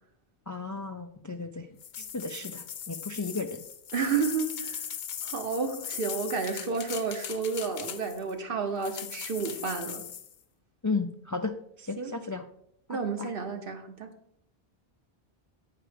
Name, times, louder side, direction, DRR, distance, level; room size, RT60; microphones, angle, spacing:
voice 1, 0.5-1.7 2.0-3.6 10.8-11.5 11.8-12.4 12.9-13.3, left 3 dB, 30° left, 6 dB, 0.3 m, -34 dB
sound 1, 1.8-8.3 8.8-10.3, left 8 dB, 70° left, 0.9 m, -39 dB
voice 2, 3.9-4.8 5.2-10.0 12.0-12.1 12.9-14.1, right 5 dB, 60° right, 5 dB, 1.1 m, -31 dB
8.9 x 4.9 x 5.0 m, 0.71 s
omnidirectional pair, 1.0 m